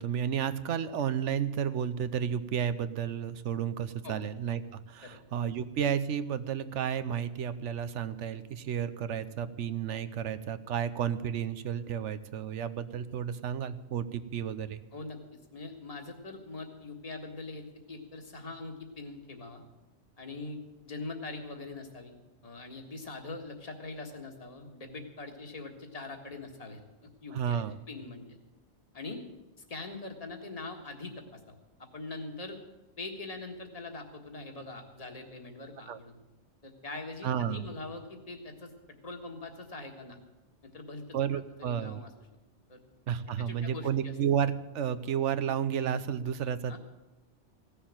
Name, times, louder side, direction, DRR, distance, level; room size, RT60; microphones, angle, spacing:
voice 1, 0.0-14.8 27.3-27.8 35.9-36.0 37.2-37.7 41.1-42.0 43.1-46.8, right 8 dB, 80° right, 13 dB, 1.1 m, -32 dB
voice 2, 15.5-19.6 20.2-20.6 20.8-22.1 22.4-26.8 27.2-28.4 28.9-29.2 29.6-32.6 33.0-36.2 36.6-40.2 40.6-41.0 41.3-42.1 42.7-42.8 43.4-44.2 46.7-46.8, left 3 dB, 30° left, 4 dB, 1.6 m, -43 dB
16.0 x 7.0 x 8.7 m, 1.1 s
omnidirectional pair, 1.2 m